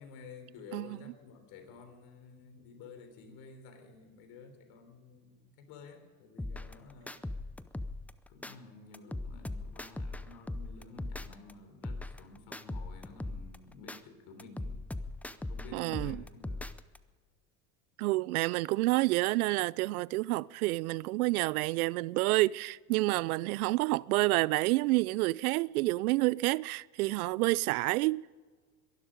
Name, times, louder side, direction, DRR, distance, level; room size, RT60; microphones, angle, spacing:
voice 1, 0.0-7.2 8.3-14.8 15.3-16.6, left 4 dB, 65° left, 3.9 m, -52 dB
sound 1, 6.4-8.5 8.9-11.5 11.8-14.0 14.4-17.0, left 2 dB, 5° left, 0.6 m, -40 dB
voice 2, 15.7-16.2 18.0-28.3, right 20 dB, 85° right, 0.5 m, -29 dB
22.5 x 12.0 x 5.2 m
supercardioid pair, 100°, 42 cm